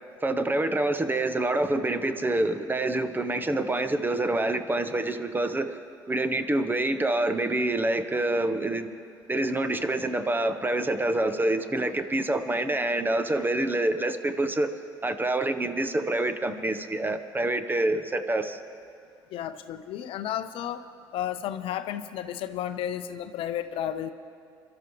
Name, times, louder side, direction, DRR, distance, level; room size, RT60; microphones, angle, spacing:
voice 1, 0.2-5.7 6.1-8.9 9.3-14.7 15.0-18.6, right 2 dB, 20° right, 9 dB, 1.1 m, -26 dB
voice 2, 19.3-20.8 21.1-24.1, left 10 dB, 60° left, 11 dB, 0.6 m, -32 dB
28.0 x 12.5 x 3.2 m, 2.4 s
hypercardioid pair, 60°, 10 cm